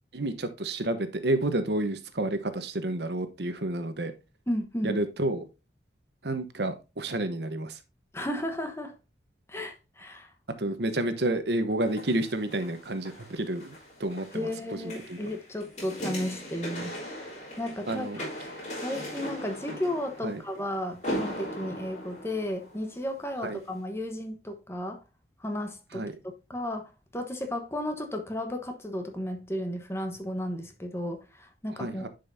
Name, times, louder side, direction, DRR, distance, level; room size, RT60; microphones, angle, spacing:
voice 1, 0.1-4.1 4.8-5.5 6.2-7.8 10.6-15.3 17.9-18.2 20.2-20.4 23.4-23.6 25.9-26.1 31.8-32.1, right 1 dB, 70° right, 1.0 m, -30 dB
voice 2, 4.5-5.0 8.1-8.9 9.5-10.3 14.3-17.3 17.6-18.5 18.8-25.0 25.4-32.1, left 1 dB, 15° left, 1.0 m, -34 dB
sound 1, 11.8-23.1 23.6-23.7, equal, 40° left, 3.6 m, -39 dB
10.0 x 5.4 x 2.6 m
head